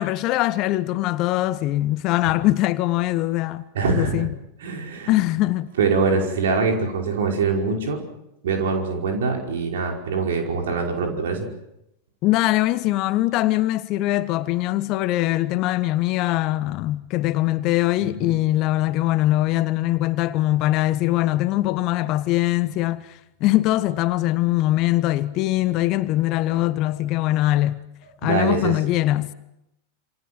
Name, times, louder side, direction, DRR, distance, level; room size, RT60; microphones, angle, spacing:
voice 1, 0.0-4.3 5.1-5.7 12.2-23.0 23.4-27.8 28.2-29.3, left 16 dB, 40° left, 1.2 m, -22 dB
voice 2, 3.8-4.3 4.6-5.1 5.8-8.0 8.4-11.5 18.0-18.4 28.2-28.8, right 4 dB, 60° right, 5.3 m, -23 dB
27.5 x 27.5 x 6.2 m
figure-of-eight pair, 90°, 0 cm